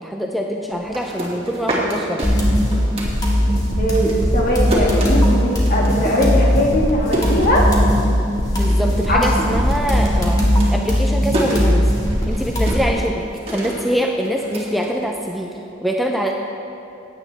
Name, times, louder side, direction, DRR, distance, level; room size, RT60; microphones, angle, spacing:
voice 1, 0.0-2.3 8.5-10.4 10.7-11.9 12.3-15.5 15.8-16.3, equal, ahead, 1 dB, 0.5 m, -24 dB
sound 1, 0.7-3.7 3.9-8.1 8.4-9.0 9.3-15.5, right 1 dB, 30° right, 2.1 m, -28 dB
sound 2, 2.2-12.9, equal, 20° left, 1.8 m, -18 dB
voice 2, 3.8-7.7 9.1-9.5, equal, 50° left, -3 dB, 1.9 m, -20 dB
15.5 x 9.4 x 3.4 m, 2.6 s
head